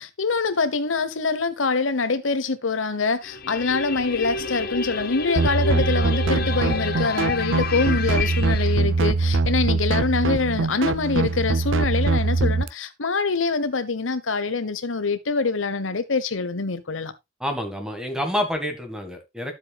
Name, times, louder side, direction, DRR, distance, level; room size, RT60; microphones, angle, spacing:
voice 1, 0.0-17.1, left 4 dB, 90° left, 1.1 m, -25 dB
sound 1, 3.2-8.8, left 4 dB, 50° left, 1.1 m, -30 dB
sound 2, 5.4-12.7, right 3 dB, 85° right, 0.7 m, -23 dB
voice 2, 17.4-19.5, left 1 dB, 5° right, 1.7 m, -28 dB
12.0 x 7.6 x 2.3 m
head